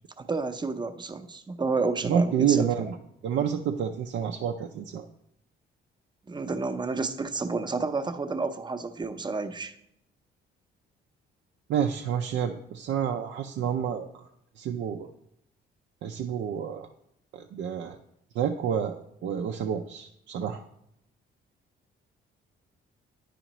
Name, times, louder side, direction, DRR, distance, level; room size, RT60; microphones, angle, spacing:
voice 1, 0.2-2.7 6.3-9.8, right 4 dB, 20° right, 8 dB, 0.6 m, -30 dB
voice 2, 2.0-3.0 3.2-5.0 11.7-14.1 14.6-15.1 16.0-16.9 17.3-18.0 18.3-20.6, right 8 dB, 70° right, 4 dB, 0.5 m, -28 dB
10.0 x 4.9 x 3.0 m, 0.77 s
cardioid pair, 90°, 20 cm